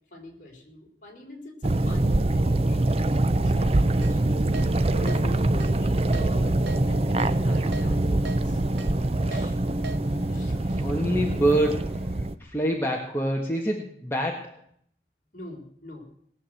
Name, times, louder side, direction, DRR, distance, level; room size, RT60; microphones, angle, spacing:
voice 1, 0.1-4.5 4.9-8.6 9.3-9.6 10.3-10.9 15.3-16.1, left 1 dB, 45° left, -1 dB, 3.9 m, -44 dB
sound 1, 1.6-12.3, right 2 dB, 35° right, 0.6 m, -24 dB
Keyboard (musical), 4.0-4.1 4.5-4.7 5.1-5.2 5.6-5.7 6.1-6.3 6.7-6.8 7.2-7.3 7.7-7.9 8.3-8.4 8.8-8.9 9.3-9.5 9.8-10.0, right 4 dB, 70° right, 0.9 m, -37 dB
sound 2, 6.6-12.3, equal, 65° left, 4.3 m, -50 dB
voice 2, 10.8-12.0 12.4-14.6, right 1 dB, 10° left, -1 dB, 1.5 m, -26 dB
19.0 x 7.6 x 7.8 m, 0.64 s
head